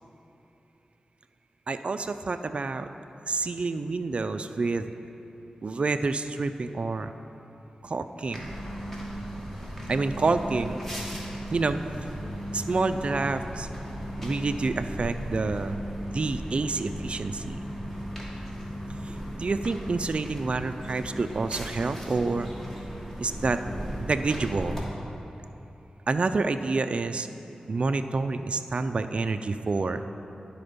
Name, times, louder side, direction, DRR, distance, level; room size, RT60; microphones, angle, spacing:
voice 1, 1.7-2.9 3.3-4.9 5.6-7.1 7.8-8.5 9.9-10.8 11.5-11.8 12.5-13.7 14.2-15.8 16.1-17.6 19.0-22.5 23.2-23.6 24.0-24.8 26.1-27.3 27.7-30.0, right 3 dB, 50° right, 9 dB, 0.3 m, -28 dB
sound 1, 8.2-24.8, equal, 10° left, 1.6 m, -36 dB
11.0 x 4.3 x 5.2 m, 2.9 s
wide cardioid pair, 70°, 3 cm